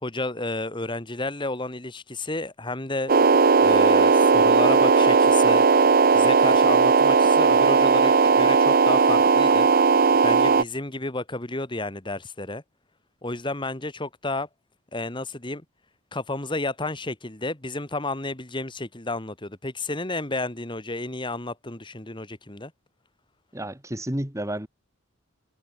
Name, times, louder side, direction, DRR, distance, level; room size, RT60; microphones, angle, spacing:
voice 1, 0.0-3.1 3.6-5.7 6.1-9.7 10.2-12.6 13.2-14.5 14.9-15.6 16.1-22.7, left 2 dB, 20° left, 2.0 m, -31 dB
sound 1, 3.1-10.6, right 5 dB, 40° right, 0.6 m, -17 dB
voice 2, 23.5-24.7, right 1 dB, 15° right, 1.9 m, -31 dB
head